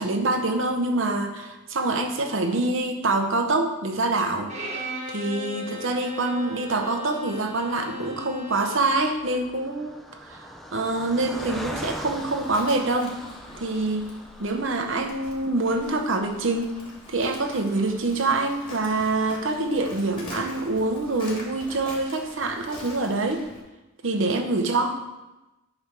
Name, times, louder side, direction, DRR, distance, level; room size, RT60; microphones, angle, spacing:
voice 1, 0.0-4.5 5.1-13.2 13.6-14.1 14.4-16.8 17.1-23.5 24.0-25.0, right 2 dB, 75° right, 4 dB, 0.8 m, -25 dB
Bowed string instrument, 4.5-9.0, equal, 35° right, 1.2 m, -36 dB
Car passing by, 6.2-21.7 22.2-22.3 22.6-22.8, equal, ahead, 0.5 m, -43 dB
Livestock farm animals working animals, 11.3-23.6, left 1 dB, 25° left, 1.7 m, -44 dB
9.7 x 3.4 x 5.9 m, 1.0 s
head